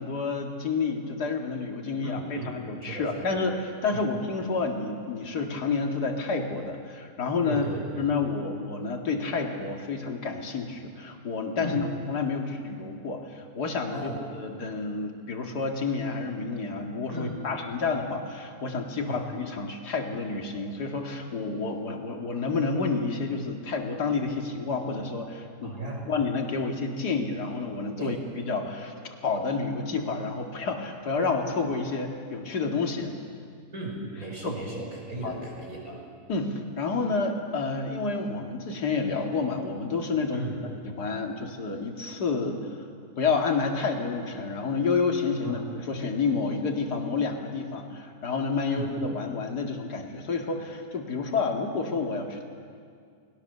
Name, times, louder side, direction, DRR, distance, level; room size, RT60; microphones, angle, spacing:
voice 1, 0.0-7.6 8.0-25.8 26.1-33.2 34.4-34.5 35.2-35.3 36.3-40.4 40.8-42.8 43.2-52.4, left 4 dB, 70° left, 2 dB, 2.7 m, -29 dB
voice 2, 2.0-2.5 2.8-3.3 3.9-4.0 7.5-8.0 11.6-11.9 13.9-14.2 17.1-17.4 19.0-19.2 25.6-26.1 28.0-28.2 33.7-36.0 40.3-40.6 45.4-45.6 48.7-48.9, right 2 dB, 55° right, -2 dB, 6.2 m, -36 dB
30.0 x 20.5 x 6.8 m, 2.2 s
omnidirectional pair, 1.8 m